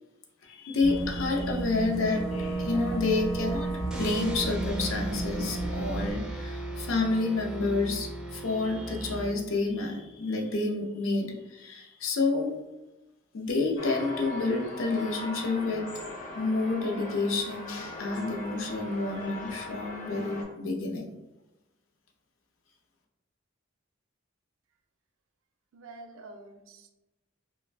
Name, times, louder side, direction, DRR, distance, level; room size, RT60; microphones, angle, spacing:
voice 1, 0.4-3.7 4.0-12.5 13.3-15.9 16.3-21.2, left 3 dB, 85° left, 1 dB, 0.6 m, -29 dB
Boat Water vehicle / Engine, 0.8-6.1, right 2 dB, 60° left, 0.9 m, -32 dB
sound 1, 3.9-9.8, right 1 dB, 5° right, 0.3 m, -38 dB
sound 2, 13.8-20.4, left 2 dB, 40° left, 0.6 m, -40 dB
voice 2, 25.7-26.9, right 2 dB, 85° right, 5 dB, 0.4 m, -47 dB
2.4 x 2.1 x 3.2 m, 1.0 s
head